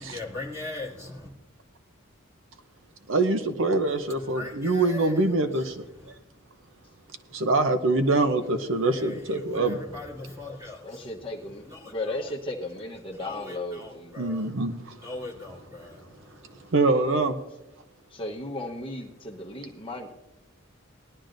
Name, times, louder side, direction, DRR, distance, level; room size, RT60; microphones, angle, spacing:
voice 1, 0.0-1.3 4.1-5.2 5.9-6.1 8.8-12.3 12.6-12.7 13.1-14.5 15.0-16.7, left 2 dB, 15° right, -3 dB, 2.7 m, -41 dB
voice 2, 3.1-5.8 7.3-9.8 14.2-15.0 16.7-17.4, right 2 dB, 65° right, 8 dB, 0.7 m, -24 dB
voice 3, 10.8-14.1 18.1-20.1, left 2 dB, 25° left, 0 dB, 1.0 m, -35 dB
19.0 x 12.0 x 2.6 m, 0.94 s
head